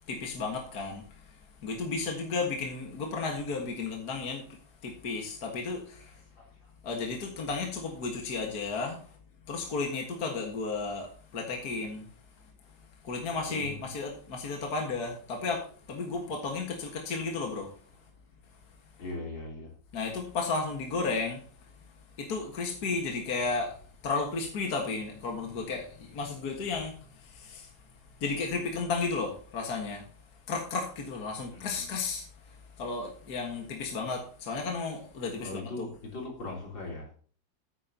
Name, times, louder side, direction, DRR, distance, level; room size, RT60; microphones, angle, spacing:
voice 1, 0.1-1.0 1.6-4.4 4.8-6.1 6.8-9.0 9.5-12.1 13.0-17.7 19.9-21.4 22.2-23.8 24.0-26.9 27.2-27.7 28.2-30.0 30.5-32.3 32.8-35.9, left 4 dB, 55° left, 2.1 m, -33 dB
voice 2, 6.4-6.7 13.3-13.9 19.0-19.7 31.5-31.9 35.4-37.1, left 2 dB, 80° left, 4.1 m, -40 dB
14.5 x 9.0 x 2.8 m
omnidirectional pair, 2.0 m